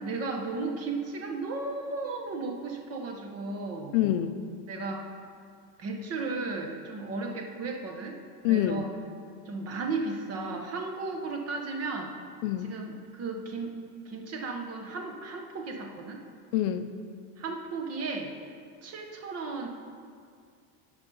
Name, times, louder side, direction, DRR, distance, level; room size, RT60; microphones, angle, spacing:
voice 1, 0.0-3.9 4.7-5.1 5.8-8.2 8.5-8.9 9.5-12.1 12.6-16.2 17.4-18.3 18.8-19.7, right 3 dB, 35° right, 4 dB, 0.9 m, -35 dB
voice 2, 3.9-4.4 8.4-8.8 12.4-12.7 16.5-16.9, left 12 dB, 60° left, 10 dB, 0.5 m, -26 dB
9.1 x 4.9 x 5.3 m, 2.2 s
supercardioid pair, 135°, 44 cm